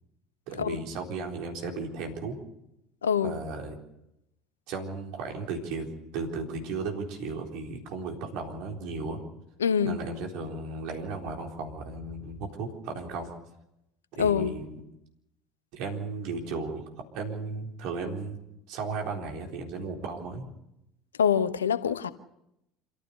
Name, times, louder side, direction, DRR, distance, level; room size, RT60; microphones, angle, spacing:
voice 1, 0.5-2.4 3.2-3.8 4.7-9.2 9.8-13.3 14.1-14.8 15.7-16.8 17.1-18.4 18.7-20.5, right 4 dB, 60° right, 4.0 m, -35 dB
voice 2, 3.0-3.3 9.6-10.0 14.2-14.5 21.2-22.1, left 7 dB, 80° left, 0.9 m, -25 dB
27.0 x 14.5 x 6.7 m
figure-of-eight pair, 65°, 0 cm